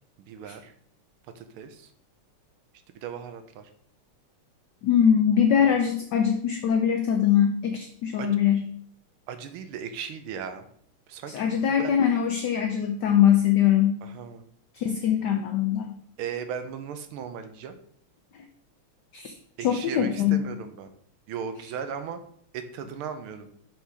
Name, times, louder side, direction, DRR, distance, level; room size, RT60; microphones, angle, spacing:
voice 1, 0.3-0.7 1.4-1.9 2.9-3.7 8.2-8.3 9.3-10.7 11.1-11.9 14.0-14.4 16.2-17.7 19.6-20.9 21.3-22.2 22.5-23.5, right 7 dB, 75° right, 9 dB, 1.6 m, -37 dB
voice 2, 4.8-8.7 11.3-14.0 14.7-15.9 18.3-18.4 19.1-19.3 19.6-20.5, left 9 dB, 70° left, 5 dB, 1.1 m, -22 dB
7.0 x 3.9 x 4.7 m, 0.63 s
omnidirectional pair, 2.4 m